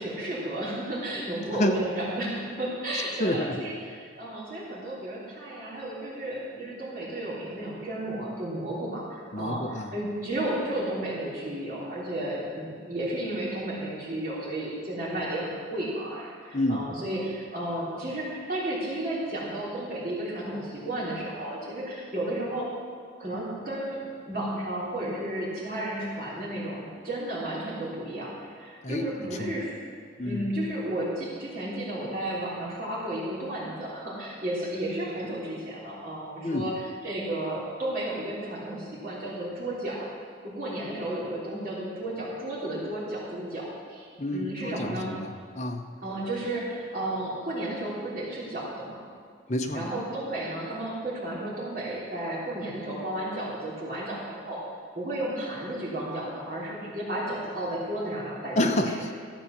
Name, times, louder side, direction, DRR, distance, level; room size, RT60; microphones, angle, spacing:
voice 1, 0.0-22.7 23.2-29.8 30.2-40.1 40.4-45.1 46.0-49.0 49.7-54.6 54.9-58.8, right 1 dB, 50° right, -7 dB, 3.5 m, -33 dB
voice 2, 3.2-3.6 9.3-9.9 16.5-16.8 28.8-29.1 29.4-29.5 30.2-30.5 36.4-36.6 44.2-45.8 49.5-49.8 58.6-59.1, left 1 dB, 40° left, 4 dB, 0.9 m, -28 dB
13.5 x 8.2 x 6.7 m, 2.1 s
head